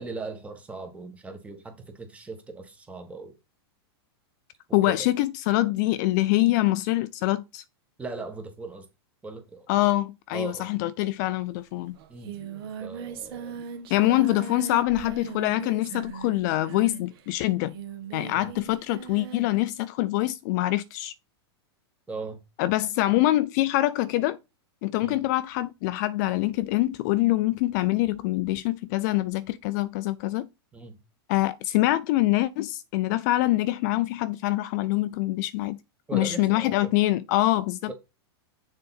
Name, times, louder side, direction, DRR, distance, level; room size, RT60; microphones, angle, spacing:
voice 1, 0.0-3.3 4.7-5.1 8.0-8.8 9.2-9.7 10.3-10.7 12.1-12.4 12.8-13.6 14.1-14.2 18.3-18.5 22.1-22.4 25.0-25.2 30.7-31.0 36.1-36.9 37.9-38.0, right 3 dB, 10° right, 1.2 m, -38 dB
voice 2, 4.7-7.6 9.7-11.9 13.9-17.7 18.1-21.1 22.6-24.4 24.8-30.5 31.3-35.8 36.1-37.9, left 17 dB, 45° left, 0.4 m, -25 dB
Singing, 11.5-11.6 11.8-19.6, right 6 dB, 60° right, 1.5 m, -39 dB
6.7 x 4.0 x 4.1 m
supercardioid pair, 145°, 14 cm